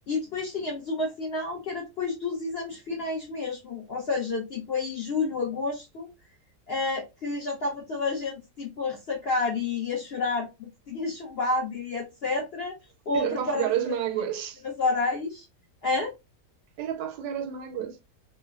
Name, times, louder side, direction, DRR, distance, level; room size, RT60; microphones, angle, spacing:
voice 1, 0.1-6.1 6.7-12.8 13.1-13.7 14.6-15.5 15.8-16.1, left 3 dB, 85° left, 0.5 m, -30 dB
voice 2, 13.1-14.6 16.8-18.0, right 9 dB, 85° right, 1.2 m, -30 dB
3.1 x 2.1 x 2.2 m
omnidirectional pair, 1.8 m